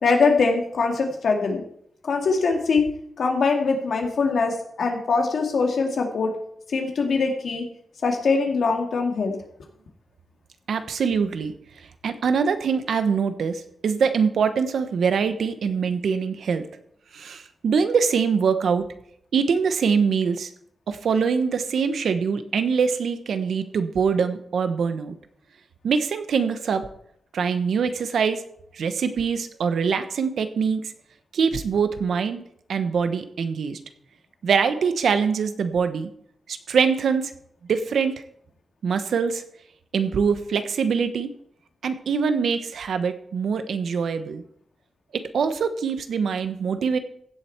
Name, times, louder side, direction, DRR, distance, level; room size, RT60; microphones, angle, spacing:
voice 1, 0.0-1.6 2.0-2.8 3.2-6.3 6.7-7.7 8.0-9.3, left 4 dB, 75° left, 2 dB, 2.1 m, -22 dB
voice 2, 10.7-16.7 17.1-18.8 19.3-20.5 20.9-25.2 25.8-26.9 27.3-28.4 28.7-30.9 31.3-32.4 32.7-33.8 34.4-36.1 36.5-37.3 37.7-38.1 38.8-39.4 39.9-41.3 41.8-44.4 45.1-47.0, right 6 dB, 90° right, 9 dB, 1.1 m, -23 dB
16.0 x 7.9 x 4.5 m, 0.67 s
wide cardioid pair, 120°, 0 cm